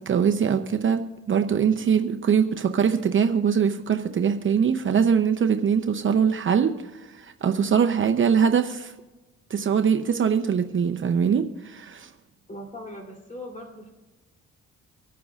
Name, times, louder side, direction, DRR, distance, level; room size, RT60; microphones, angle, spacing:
voice 1, 0.0-8.9 9.5-12.1, right 7 dB, 40° right, 6 dB, 0.7 m, -22 dB
voice 2, 12.5-13.9, left 1 dB, 25° left, 0 dB, 3.3 m, -39 dB
25.0 x 9.3 x 2.5 m, 1.1 s
cardioid pair, 90°, 30 cm